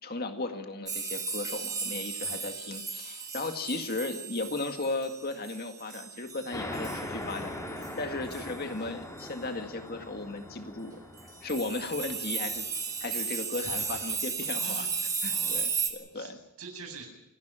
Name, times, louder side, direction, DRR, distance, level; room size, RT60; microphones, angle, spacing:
voice 1, 0.0-11.0 11.4-12.7 13.0-14.9 15.2-16.4, left 2 dB, 45° left, 6 dB, 2.0 m, -36 dB
sound 1, 0.9-7.0 7.3-7.4 7.7-7.9 8.3-8.5 9.2-9.3 11.2-15.9, right 5 dB, 15° right, 2.3 m, -34 dB
sound 2, 6.5-13.7, left 1 dB, 15° left, 3.7 m, -41 dB
voice 2, 13.6-14.2 14.6-14.9 15.3-15.7 16.1-17.1, right 3 dB, 85° right, 2 dB, 7.8 m, -46 dB
28.0 x 12.0 x 8.9 m, 0.88 s
head